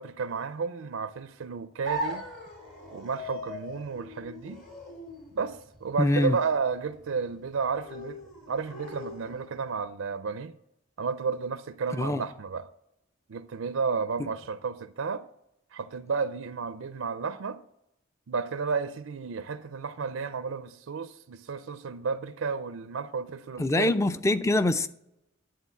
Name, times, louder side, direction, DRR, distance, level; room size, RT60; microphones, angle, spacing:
voice 1, 0.0-2.2 2.9-4.6 5.3-8.2 8.5-10.5 11.0-12.7 13.3-15.2 15.7-17.6 18.3-23.9, right 5 dB, 85° right, 0.4 m, -32 dB
sound 1, 1.8-9.8, equal, 45° left, 1.9 m, -40 dB
voice 2, 6.0-6.4 12.0-12.2 23.6-24.9, left 2 dB, 15° left, 0.4 m, -24 dB
10.5 x 3.8 x 7.1 m
head